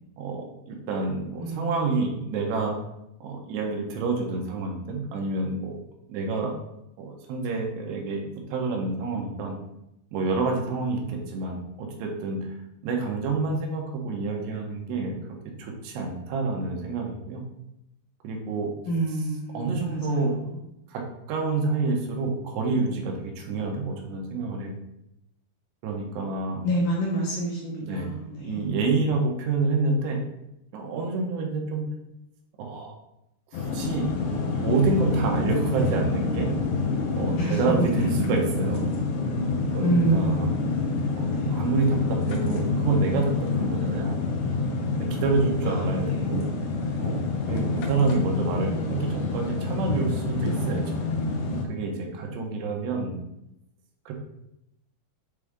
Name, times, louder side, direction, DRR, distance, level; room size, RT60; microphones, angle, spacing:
voice 1, 0.2-2.7 3.2-5.8 6.1-6.5 7.0-8.2 8.5-9.6 10.1-12.4 12.8-15.2 15.6-17.4 18.2-18.7 19.5-20.4 20.9-21.0 21.3-24.7 25.8-26.7 27.8-28.1 28.4-30.2 30.7-31.8 32.6-32.9 33.5-34.0 34.6-36.5 37.2-38.9 39.7-40.5 41.2-43.3 43.6-44.2 45.0-46.4 47.0-47.2 47.5-51.1 51.7-53.2 54.1-54.2, right 3 dB, 85° right, 1 dB, 3.2 m, -28 dB
voice 2, 1.4-1.7 18.9-20.6 26.6-28.7 37.4-38.4 39.8-40.9 41.3-41.6 45.6-46.4 47.5-47.9, right 1 dB, 70° left, -3 dB, 2.1 m, -28 dB
sound 1, 33.5-51.7, left 3 dB, 85° left, 3.1 m, -27 dB
8.3 x 3.7 x 3.6 m, 0.85 s
omnidirectional pair, 4.8 m